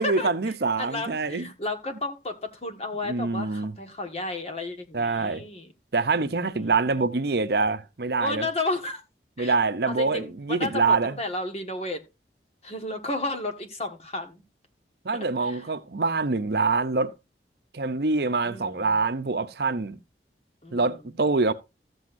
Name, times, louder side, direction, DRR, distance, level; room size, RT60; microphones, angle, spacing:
voice 1, 0.0-1.5 3.0-3.7 4.9-5.4 5.9-8.5 9.4-11.2 15.0-17.1 17.7-20.0 20.7-21.5, right 3 dB, 65° right, 0.7 m, -25 dB
voice 2, 0.8-5.7 6.5-7.0 8.2-9.0 9.4-9.5 9.8-12.0 12.6-14.4 15.1-15.6 18.4-19.1 20.6-21.0, left 2 dB, 35° left, 1.5 m, -33 dB
14.0 x 7.9 x 2.6 m
head